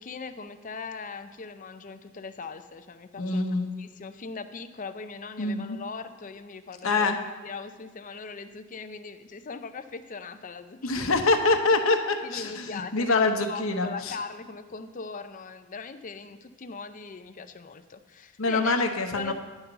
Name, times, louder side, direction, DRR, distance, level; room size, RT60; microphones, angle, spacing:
voice 1, 0.0-3.5 3.8-7.1 7.4-11.4 12.2-18.8 19.2-19.3, left 4 dB, 40° left, 9 dB, 0.5 m, -40 dB
voice 2, 3.2-3.7 5.4-5.8 6.8-7.2 10.8-14.1 18.4-19.3, left 3 dB, 70° left, 5 dB, 1.0 m, -25 dB
11.0 x 5.6 x 6.9 m, 1.3 s
head